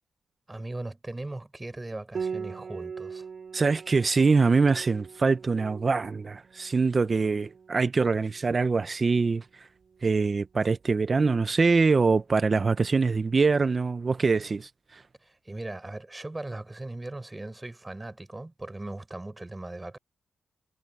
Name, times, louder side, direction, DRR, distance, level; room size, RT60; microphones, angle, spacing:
voice 1, 0.5-3.3 15.2-20.0, right 2 dB, 20° right, 4.5 m, -38 dB
Piano, 2.1-11.5, right 6 dB, 55° right, 3.7 m, -42 dB
voice 2, 3.5-9.4 10.0-14.7, right 4 dB, 40° right, 0.7 m, -24 dB
cardioid pair, 90°, 0 cm